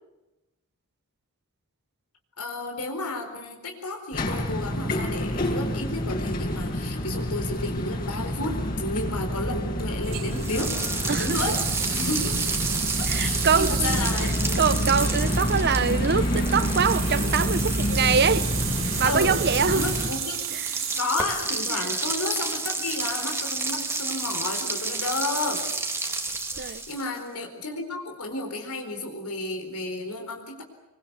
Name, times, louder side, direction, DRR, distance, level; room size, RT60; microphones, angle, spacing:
voice 1, 2.4-12.4 13.0-14.6 19.0-19.4 19.7-20.4 21.0-25.7 26.5-30.6, left 2 dB, 90° left, 4.4 m, -32 dB
sound 1, 4.1-20.1, equal, 40° left, 6.5 m, -28 dB
sound 2, 10.0-21.0, right 10 dB, 65° right, 4.2 m, -34 dB
sound 3, 10.4-27.2, right 3 dB, 10° right, 2.1 m, -31 dB
voice 2, 11.1-11.4 13.1-19.9 20.5-20.7 21.7-21.9 26.6-26.8, right 6 dB, 50° right, 0.9 m, -25 dB
25.5 x 23.0 x 8.2 m
head